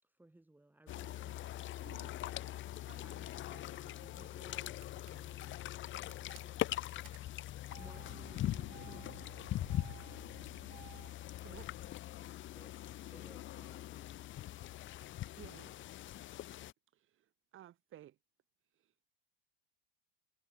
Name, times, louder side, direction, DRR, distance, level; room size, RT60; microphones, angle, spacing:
voice 1, 0.0-5.6 6.4-9.3 10.3-10.7 11.3-12.0 12.5-12.7 13.1-14.1, right 2 dB, 5° right, 3.3 m, -62 dB
sound 1, 0.9-16.7, left 14 dB, 40° left, 1.1 m, -42 dB
Engine starting, 1.5-2.1 2.9-4.3 4.5-5.1 5.8-11.1, right 30 dB, 70° right, 1.4 m, -57 dB
voice 2, 11.4-11.7 15.4-15.8 16.9-18.2 18.7-19.1, right 12 dB, 40° right, 5.8 m, -56 dB
voice 3, 13.3-15.5, left 21 dB, 55° left, 3.7 m, -64 dB
supercardioid pair, 105°, 30 cm